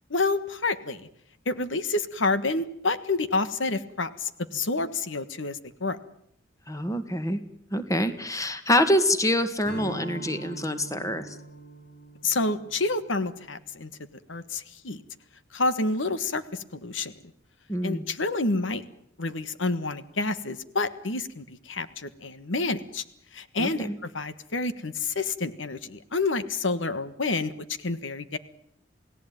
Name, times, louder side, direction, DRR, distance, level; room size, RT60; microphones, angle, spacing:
voice 1, 0.1-1.1 1.4-6.0 12.2-13.9 14.3-15.0 15.5-17.1 17.8-18.8 19.2-23.0 23.3-27.5 27.8-28.4, left 3 dB, 85° left, 12 dB, 1.5 m, -28 dB
voice 2, 6.7-7.4 7.7-11.3 17.7-18.0 23.6-23.9, left 1 dB, 20° left, 10 dB, 2.0 m, -26 dB
Strum, 9.6-14.3, right 1 dB, 60° left, 5.5 m, -43 dB
29.0 x 18.0 x 9.2 m, 0.73 s
head